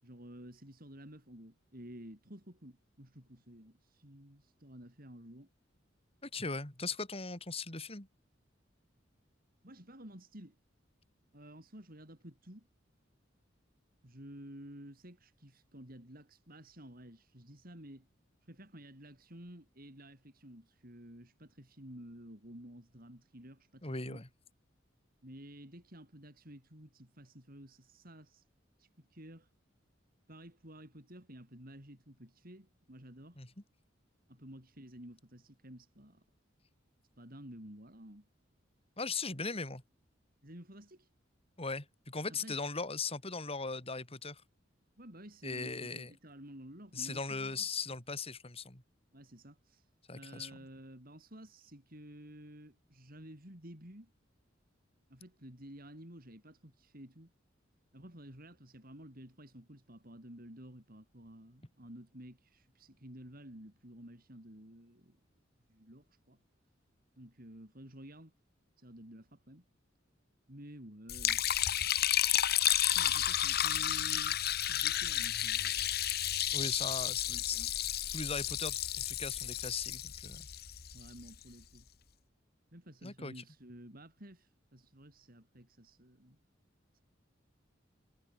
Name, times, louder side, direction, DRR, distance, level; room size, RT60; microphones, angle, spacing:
voice 1, 0.0-5.5 9.6-10.6 11.3-12.7 14.0-18.1 18.4-24.2 25.2-28.5 28.8-29.5 30.3-33.4 34.3-36.2 37.2-38.3 40.4-41.1 42.3-42.6 45.0-47.7 49.1-54.1 55.1-57.3 57.9-65.2 65.7-66.4 67.2-68.3 68.8-69.6 70.5-71.6 72.9-75.8 77.2-77.7 80.9-81.9 82.7-86.4 86.9-87.0, right 1 dB, 50° right, 7.5 m, -52 dB
voice 2, 6.2-8.1 23.8-24.3 33.4-33.5 39.0-39.8 41.6-44.4 45.4-46.1 46.9-48.8 50.1-50.5 76.5-77.6 78.1-80.5 83.0-83.4, left 4 dB, 30° left, 4.0 m, -39 dB
Liquid, 71.1-81.3, left 11 dB, 55° left, 1.4 m, -32 dB
head